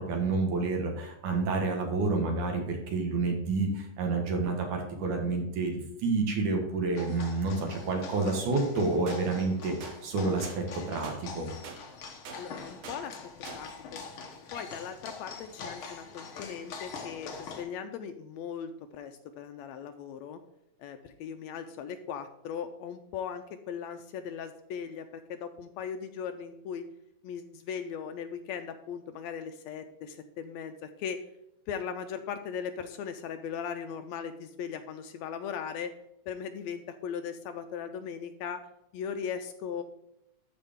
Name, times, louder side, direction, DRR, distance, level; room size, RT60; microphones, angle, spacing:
voice 1, 0.1-11.5, right 3 dB, 75° right, 2 dB, 3.1 m, -29 dB
sound 1, 6.9-17.6, left 5 dB, 60° left, 1.5 m, -44 dB
sound 2, 9.1-9.2 9.8-10.0 10.4-10.6 11.0-11.2 11.6-11.8 12.3-12.4 12.8-13.0 13.5-13.6, right 5 dB, 60° right, 1.9 m, -43 dB
voice 2, 12.4-13.2 13.5-14.0 14.5-20.4 20.8-26.8 27.2-31.2 31.7-35.9 36.3-38.6 38.9-39.8, left 7 dB, 80° left, 8 dB, 1.7 m, -38 dB
13.0 x 4.8 x 3.6 m, 0.85 s
omnidirectional pair, 3.6 m